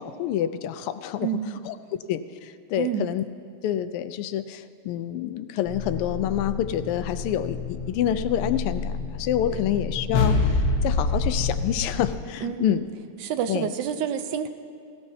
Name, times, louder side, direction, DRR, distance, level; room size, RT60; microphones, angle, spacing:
voice 1, 0.0-1.3 1.7-1.8 2.1-3.2 3.6-8.9 9.2-12.8 13.5-13.7, left 10 dB, 85° left, 11 dB, 1.5 m, -27 dB
voice 2, 1.2-1.6 2.8-3.1 9.5-9.6 12.4-12.8 13.2-14.5, right 9 dB, 70° right, 9 dB, 1.1 m, -28 dB
sound 1, 5.7-12.1, left 3 dB, 60° left, 1.9 m, -27 dB
17.5 x 17.0 x 2.8 m, 2.3 s
omnidirectional pair, 2.4 m